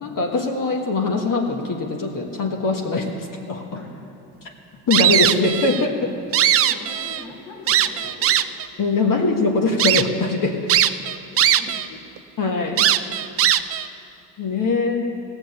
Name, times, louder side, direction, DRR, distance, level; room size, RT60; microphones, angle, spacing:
voice 1, 0.0-3.7 4.4-4.5 4.9-6.2 8.8-10.7 12.4-13.0 14.4-15.2, left 3 dB, 45° left, 1 dB, 1.5 m, -22 dB
voice 2, 3.7-4.1 6.6-8.5 10.8-12.1, left 2 dB, 80° left, 0 dB, 2.8 m, -42 dB
sound 1, 4.9-5.8 6.2-7.2 7.7-8.7 9.2-9.3 9.8-10.0 10.7-11.9 12.2-12.3 12.8-13.9, right 11 dB, 30° right, 0.4 m, -19 dB
16.5 x 7.2 x 7.1 m, 2.7 s
supercardioid pair, 75°, 48 cm